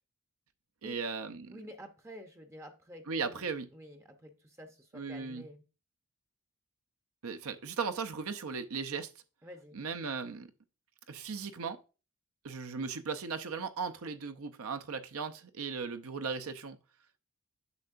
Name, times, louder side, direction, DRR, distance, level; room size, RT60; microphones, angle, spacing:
voice 1, 0.8-1.5 3.1-3.7 4.9-5.4 7.2-9.1 9.7-10.5 11.1-11.8 12.4-16.8, right 5 dB, 75° right, 0.6 m, -37 dB
voice 2, 1.5-5.6 9.4-9.8, equal, 10° right, 0.6 m, -50 dB
8.2 x 6.6 x 2.5 m
head